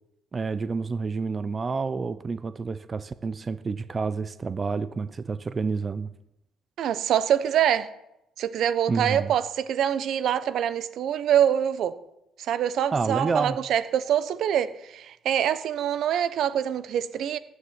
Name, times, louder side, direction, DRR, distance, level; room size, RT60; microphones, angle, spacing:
voice 1, 0.3-6.1 8.9-9.3 12.9-13.6, right 4 dB, 35° right, 0.7 m, -29 dB
voice 2, 6.8-7.9 8.4-11.9 12.4-17.4, right 9 dB, 70° right, 0.9 m, -25 dB
15.0 x 6.8 x 9.5 m
supercardioid pair, 75°, 0 cm